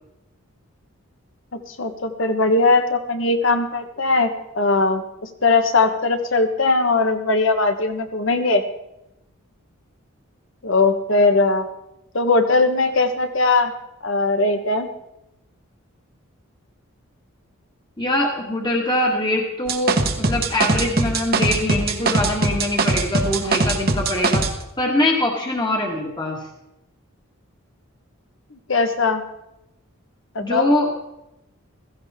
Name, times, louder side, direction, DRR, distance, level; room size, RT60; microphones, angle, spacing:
voice 1, 1.7-5.0 5.4-8.6 10.6-11.7 12.1-13.7 14.0-14.9 28.5-29.2 30.3-30.7, left 3 dB, 60° left, 7 dB, 1.3 m, -19 dB
voice 2, 18.0-24.4 24.8-26.4 30.4-30.9, left 1 dB, 20° left, 0 dB, 1.6 m, -23 dB
sound 1, 19.7-24.5, right 3 dB, 45° right, 1.2 m, -21 dB
16.0 x 15.0 x 3.6 m, 0.89 s
head